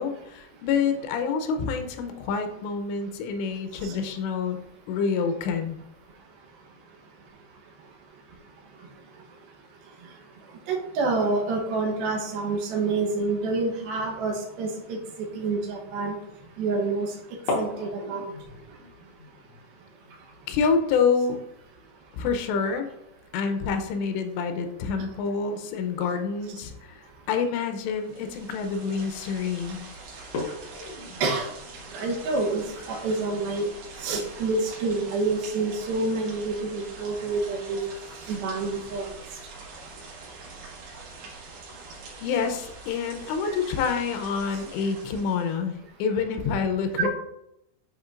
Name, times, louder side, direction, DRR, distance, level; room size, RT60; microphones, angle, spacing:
voice 1, 0.0-4.6 4.9-5.8 20.5-21.4 22.1-22.9 23.3-29.9 42.2-45.7 46.0-47.1, left 5 dB, 85° left, 6 dB, 3.0 m, -27 dB
voice 2, 10.7-15.0 15.3-16.1 16.6-17.1 17.6-18.3 31.2-31.5 31.9-33.7 34.0-37.8 38.3-39.1 47.0-47.1, right 3 dB, 70° right, 0 dB, 2.6 m, -27 dB
sound 1, 15.8-16.1 17.3-23.8 24.0-24.1 24.5-24.9 25.9-26.1 26.7-26.8 27.3-27.4 27.8-28.1 28.7-29.1 29.5-29.6 30.2-32.5, left 2 dB, 70° left, 1.7 m, -38 dB
sound 2, 27.9-45.6, right 3 dB, 90° right, 4.0 m, -44 dB
10.5 x 4.4 x 2.5 m, 0.81 s
omnidirectional pair, 5.0 m